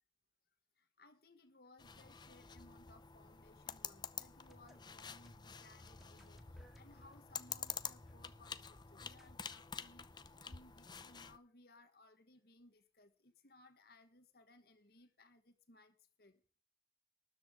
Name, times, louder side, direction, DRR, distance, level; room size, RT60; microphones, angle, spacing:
voice 1, 0.8-16.4, left 2 dB, 55° left, 1.4 m, -64 dB
sound 1, 1.8-11.4, left 7 dB, 25° left, 0.6 m, -49 dB
sound 2, 4.1-9.3, equal, ahead, 1.8 m, -65 dB
13.0 x 10.5 x 5.1 m
head